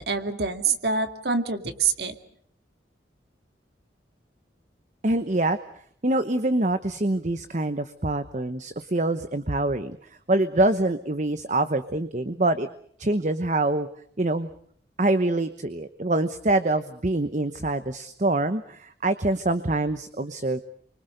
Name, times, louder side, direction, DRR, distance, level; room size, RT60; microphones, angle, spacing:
voice 1, 0.1-2.1, right 5 dB, 65° right, 7 dB, 2.3 m, -26 dB
voice 2, 5.0-5.6 6.0-12.7 13.0-13.9 14.2-14.5 15.0-20.6, right 2 dB, 40° right, 10 dB, 1.0 m, -25 dB
29.0 x 25.0 x 6.7 m, 0.64 s
head